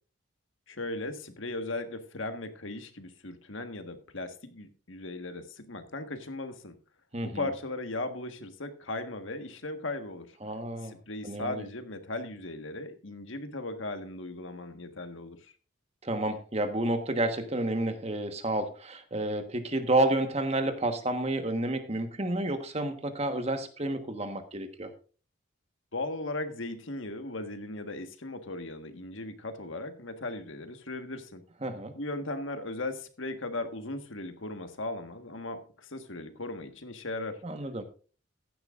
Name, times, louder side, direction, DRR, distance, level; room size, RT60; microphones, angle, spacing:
voice 1, 0.7-6.7 7.2-10.4 10.8-15.5 25.9-31.4 31.9-37.4, left 2 dB, 75° left, 7 dB, 1.5 m, -37 dB
voice 2, 7.1-7.5 10.4-10.9 11.2-11.6 16.0-24.9 31.6-31.9 37.4-37.8, right 1 dB, 30° right, 7 dB, 1.4 m, -30 dB
15.0 x 11.0 x 2.5 m, 0.37 s
head